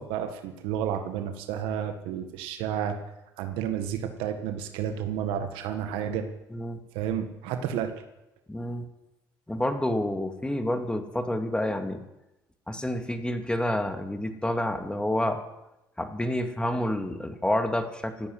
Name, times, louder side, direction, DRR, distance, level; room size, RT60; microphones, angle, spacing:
voice 1, 0.0-3.0 3.4-6.3 6.9-7.9, right 9 dB, 80° right, 7 dB, 1.6 m, -31 dB
voice 2, 8.5-8.8 9.5-12.0 12.7-15.4 16.0-18.3, left 1 dB, 10° left, 6 dB, 2.3 m, -28 dB
15.0 x 8.5 x 9.9 m, 0.94 s
supercardioid pair, 65°, 9 cm